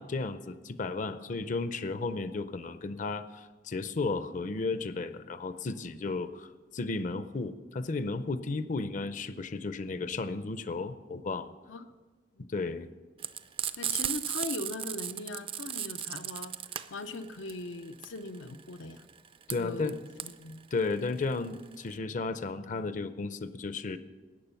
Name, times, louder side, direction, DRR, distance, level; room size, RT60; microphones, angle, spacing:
voice 1, 0.0-11.5 12.5-12.9 19.5-20.0 20.7-24.0, left 3 dB, 45° left, 12 dB, 0.5 m, -34 dB
Frying (food), 13.2-21.9, right 9 dB, 30° right, 0.4 m, -35 dB
voice 2, 13.8-16.5 16.9-19.1 19.5-20.6, left 2 dB, 85° left, 11 dB, 0.6 m, -40 dB
14.0 x 9.3 x 5.7 m, 1.3 s
head